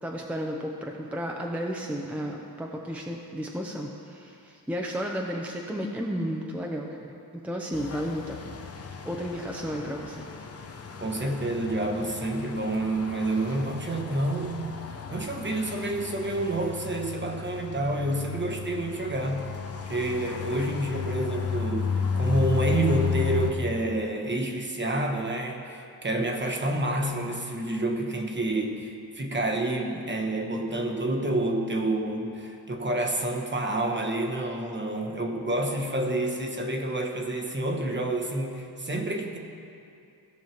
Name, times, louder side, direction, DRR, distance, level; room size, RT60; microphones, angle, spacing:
voice 1, 0.0-8.6 9.0-10.2, equal, 5° right, 0 dB, 0.7 m, -33 dB
sound 1, 7.7-23.5, left 6 dB, 40° left, 0.7 m, -34 dB
voice 2, 11.0-14.8 15.1-19.5 19.9-39.4, right 1 dB, 30° right, 3 dB, 1.1 m, -28 dB
16.5 x 5.6 x 4.5 m, 2.6 s
cardioid pair, 100°, 39 cm